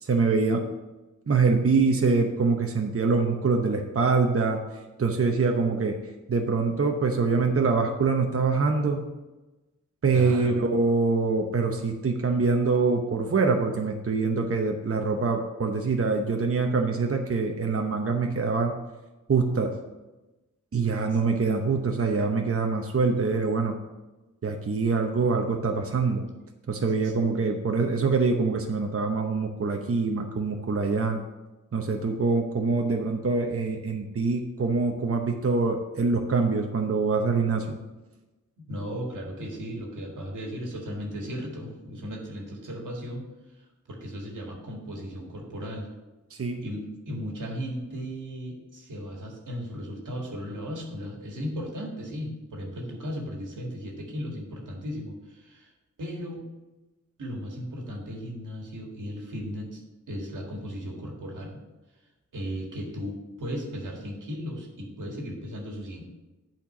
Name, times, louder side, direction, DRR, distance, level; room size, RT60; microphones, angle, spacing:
voice 1, 0.0-0.7 1.3-4.6 5.0-6.0 6.3-9.0 10.0-18.8 19.3-19.8 20.7-23.8 24.4-26.2 26.7-31.2 31.7-37.8 46.3-46.6, right 4 dB, 50° right, 3 dB, 0.9 m, -24 dB
voice 2, 10.1-10.6 27.0-27.1 38.6-45.9 46.6-55.7 56.0-56.5 57.2-59.8 60.1-61.6 62.3-66.1, equal, 90° right, 0 dB, 1.8 m, -36 dB
8.5 x 4.5 x 6.0 m, 1.1 s
cardioid pair, 55°, 30 cm